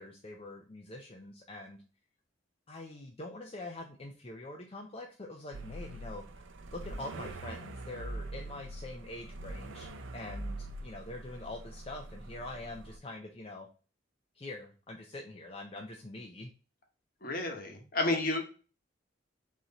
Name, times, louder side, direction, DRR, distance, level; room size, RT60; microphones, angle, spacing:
voice 1, 0.0-1.8 2.7-6.5 6.7-10.6 10.8-13.7 14.3-16.5, left 2 dB, 30° left, 1 dB, 0.5 m, -44 dB
sound 1, 5.5-13.0, right 1 dB, 80° right, 0.6 m, -43 dB
voice 2, 17.2-18.4, left 2 dB, 50° left, 4 dB, 1.0 m, -31 dB
3.9 x 3.1 x 4.0 m, 0.36 s
head